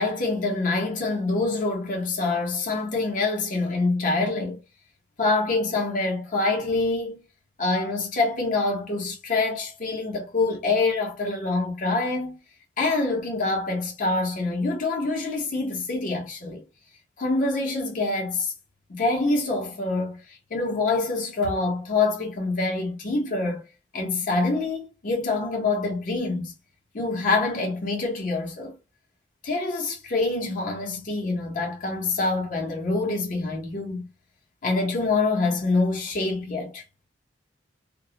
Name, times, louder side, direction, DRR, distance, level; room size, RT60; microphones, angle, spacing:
voice 1, 0.0-4.6 5.2-7.2 7.6-12.4 12.8-16.6 17.2-18.5 18.9-23.6 23.9-26.5 26.9-28.8 29.4-34.0 34.6-36.8, left 3 dB, 45° left, 0.7 m, -26 dB
2.2 x 2.0 x 2.7 m
head